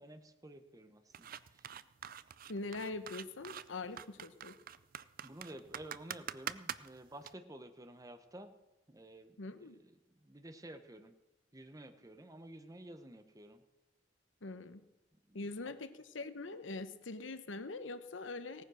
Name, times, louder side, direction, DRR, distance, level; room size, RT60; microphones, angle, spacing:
voice 1, 0.0-1.7 5.2-8.5 8.9-11.1 11.5-13.6 15.3-15.8, right 1 dB, 20° right, 9 dB, 1.0 m, -52 dB
sound 1, 1.1-7.3, right 9 dB, 50° right, 0.5 m, -45 dB
voice 2, 2.5-4.5 9.4-9.8 14.4-14.8 15.3-18.6, left 3 dB, 85° left, 12 dB, 1.0 m, -43 dB
17.5 x 9.6 x 6.4 m, 1.0 s
head